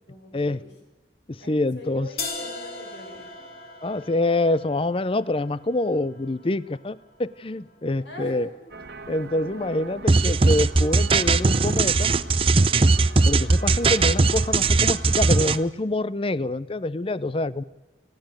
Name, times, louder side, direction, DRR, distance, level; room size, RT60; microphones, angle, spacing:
voice 1, 0.1-0.7 1.4-3.5 8.0-8.5, left 1 dB, 80° left, 2 dB, 7.0 m, -43 dB
voice 2, 1.3-2.1 3.8-8.5 9.1-12.1 13.2-17.6, left 2 dB, 30° left, 18 dB, 0.6 m, -26 dB
sound 1, 2.2-8.1, left 3 dB, 55° left, 3.7 m, -39 dB
sound 2, 8.7-15.7, right 3 dB, 65° right, 1.4 m, -42 dB
sound 3, 10.1-15.6, right 3 dB, 30° right, 0.6 m, -19 dB
29.0 x 10.5 x 9.0 m, 1.2 s
head